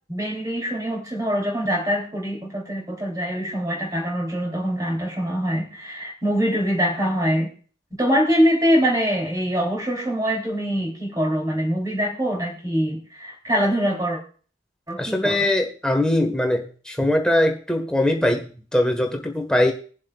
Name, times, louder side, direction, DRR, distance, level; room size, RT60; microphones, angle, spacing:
voice 1, 0.1-7.5 8.0-14.2 14.9-15.5, equal, 20° right, 0 dB, 2.9 m, -24 dB
voice 2, 15.0-19.7, left 1 dB, 5° left, 3 dB, 1.4 m, -21 dB
21.5 x 7.4 x 2.4 m, 0.41 s
head